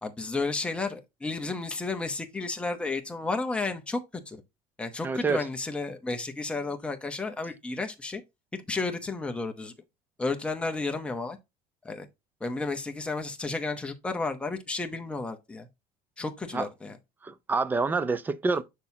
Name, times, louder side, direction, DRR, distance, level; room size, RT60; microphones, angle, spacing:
voice 1, 0.0-4.0 4.3-4.4 4.8-8.2 8.5-9.7 10.2-11.4 11.8-12.1 12.4-15.7 16.2-17.0, left 3 dB, 5° left, 0.8 m, -32 dB
voice 2, 5.0-5.5 16.5-16.7 17.2-18.6, right 4 dB, 10° right, 0.4 m, -27 dB
7.0 x 6.2 x 2.7 m
cardioid pair, 175°, 15 cm